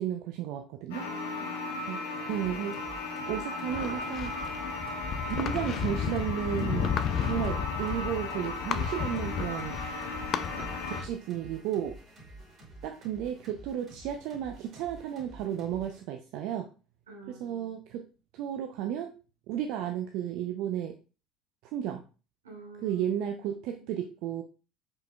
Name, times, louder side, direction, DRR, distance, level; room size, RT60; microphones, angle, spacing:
voice 1, 0.0-1.0 1.9-2.0 2.3-2.8 3.3-4.3 5.2-6.9 7.2-9.8 10.8-11.9 12.8-16.7 17.3-18.0 18.3-19.1 19.5-20.9 21.7-22.0 22.8-24.4, right 10 dB, 65° right, 5 dB, 0.4 m, -33 dB
sound 1, 0.9-11.0, left 3 dB, 75° left, 1.0 m, -36 dB
voice 2, 0.9-2.4 17.1-17.9 22.4-23.0 23.8-23.9, right 3 dB, 90° right, -1 dB, 1.7 m, -49 dB
sound 2, 2.3-16.0, right 2 dB, 40° right, 2.6 m, -50 dB
sound 3, 3.7-11.1, left 7 dB, 50° left, 0.4 m, -33 dB
4.9 x 4.7 x 2.2 m, 0.34 s
hypercardioid pair, 70°, 0 cm